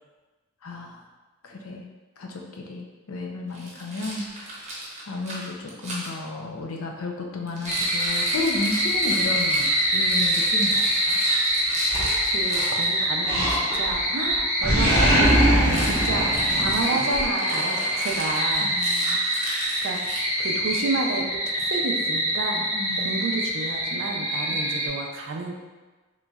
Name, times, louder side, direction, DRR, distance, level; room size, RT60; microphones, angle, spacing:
voice 1, 0.6-1.0 1.4-1.9 2.2-4.3 5.1-11.2 18.6-19.2 22.7-23.3 24.5-24.6, left 2 dB, 75° left, 1 dB, 0.5 m, -33 dB
Rattle, 3.5-6.1 7.5-12.9 15.6-20.6, right 1 dB, 30° right, 0.8 m, -35 dB
sound 1, 7.6-24.9, equal, 15° left, 0.7 m, -25 dB
Animal, 11.9-12.7 13.2-14.0 14.3-17.2, equal, 35° left, 1.0 m, -22 dB
voice 2, 12.2-18.7 19.8-20.1 20.4-22.6 23.0-25.6, right 3 dB, 60° right, 2 dB, 0.4 m, -31 dB
3.9 x 3.0 x 2.3 m, 1.2 s
head